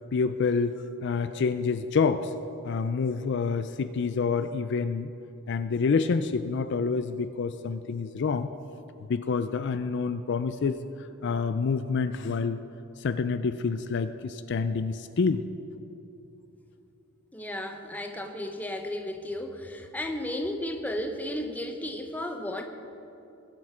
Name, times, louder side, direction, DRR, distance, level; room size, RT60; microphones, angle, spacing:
voice 1, 0.1-2.3 2.6-5.1 5.5-8.5 9.1-12.6 13.0-15.4, left 5 dB, 55° left, 11 dB, 0.4 m, -27 dB
voice 2, 17.3-22.6, left 1 dB, 5° left, 4 dB, 0.8 m, -34 dB
20.5 x 7.6 x 4.9 m, 2.9 s
head